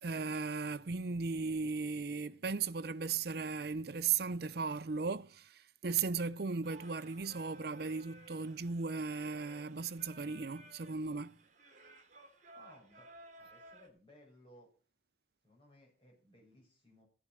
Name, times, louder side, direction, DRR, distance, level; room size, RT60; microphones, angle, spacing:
voice 1, 0.0-11.4, right 5 dB, 55° right, 0.6 m, -36 dB
Singing, 6.6-13.9, right 2 dB, 40° right, 2.8 m, -57 dB
voice 2, 12.5-13.1 13.3-14.7 15.4-17.0, left 1 dB, 30° left, 6.1 m, -61 dB
15.0 x 7.7 x 6.3 m
head